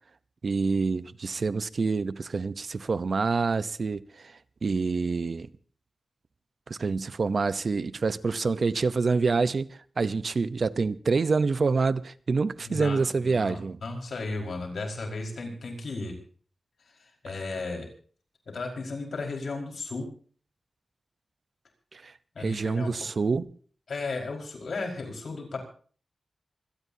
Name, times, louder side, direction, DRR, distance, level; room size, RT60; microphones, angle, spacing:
voice 1, 0.4-5.5 6.7-13.8 21.9-23.5, right 4 dB, 60° right, 0.7 m, -27 dB
voice 2, 12.6-16.2 16.9-17.9 18.5-20.1 22.3-22.9 23.9-25.6, left 3 dB, 85° left, 4.9 m, -35 dB
25.5 x 17.5 x 2.8 m
wide cardioid pair, 95°, 0 cm